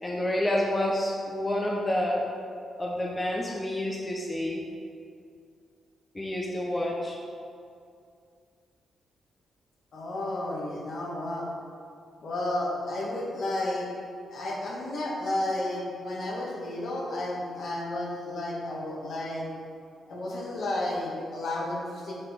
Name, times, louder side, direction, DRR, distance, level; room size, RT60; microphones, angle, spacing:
voice 1, 0.0-2.3 2.8-4.6 6.1-7.2, left 1 dB, 20° left, -2 dB, 0.8 m, -28 dB
voice 2, 9.9-11.5 12.2-13.9 14.3-19.5 20.1-22.1, left 1 dB, 65° left, -3 dB, 1.4 m, -32 dB
5.8 x 4.5 x 4.9 m, 2.4 s
cardioid pair, 90°, 0 cm